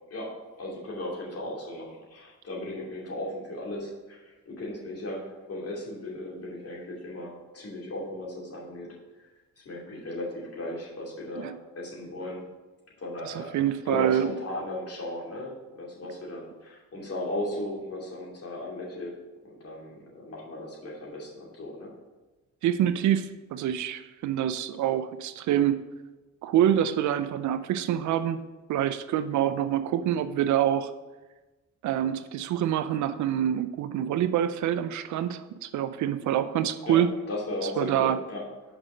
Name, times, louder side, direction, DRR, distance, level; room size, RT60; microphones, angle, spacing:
voice 1, 0.1-8.9 9.6-12.4 13.0-13.5 13.8-19.2 19.4-21.9 36.9-37.0 37.3-38.4, left 1 dB, 50° left, -3 dB, 2.6 m, -36 dB
voice 2, 13.2-14.4 22.6-25.8 26.4-28.4 28.7-30.9 31.8-37.1 37.8-38.2, right 10 dB, 70° right, 11 dB, 0.5 m, -26 dB
6.2 x 5.1 x 6.1 m, 1.2 s
cardioid pair, 90°, 30 cm